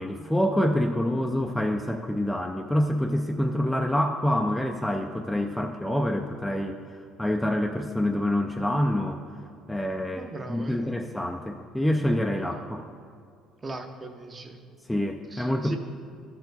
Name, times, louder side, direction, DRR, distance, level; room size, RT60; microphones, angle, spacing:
voice 1, 0.0-6.8 7.2-9.2 9.7-12.8 14.9-15.8, left 1 dB, 5° left, 4 dB, 0.4 m, -26 dB
voice 2, 10.2-11.0 13.6-14.6 15.3-15.8, right 2 dB, 25° right, 5 dB, 0.8 m, -39 dB
12.5 x 4.6 x 4.0 m, 2.2 s
cardioid pair, 100°, 0 cm